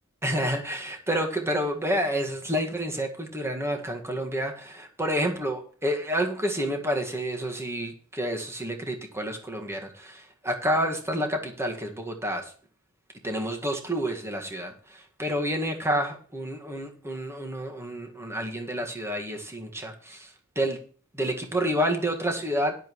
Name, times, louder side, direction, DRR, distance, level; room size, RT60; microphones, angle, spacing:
voice 1, 0.2-12.5 13.2-20.8 21.1-22.8, equal, 10° right, 2 dB, 1.8 m, -29 dB
16.5 x 10.5 x 3.1 m, 0.41 s
head